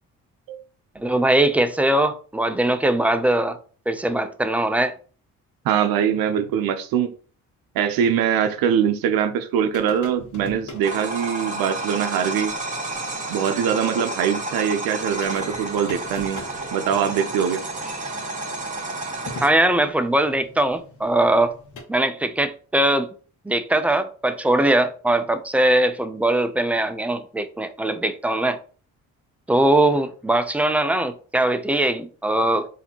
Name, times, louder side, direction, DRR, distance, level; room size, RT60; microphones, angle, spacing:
voice 1, 1.0-3.6 3.9-4.9 19.4-21.5 21.9-23.1 23.5-28.6 29.5-32.7, right 1 dB, 5° right, 0.4 m, -21 dB
voice 2, 5.6-7.1 7.7-12.5 13.3-16.4 16.7-17.6, right 8 dB, 85° right, 0.6 m, -22 dB
sound 1, 9.7-10.9 12.5-12.6 12.9-13.0 14.6-14.7 14.9-21.8, left 3 dB, 60° left, 1.1 m, -41 dB
sound 2, 10.8-19.5, right 2 dB, 20° right, 1.5 m, -31 dB
4.1 x 2.7 x 2.8 m
cardioid pair, 75°, 35 cm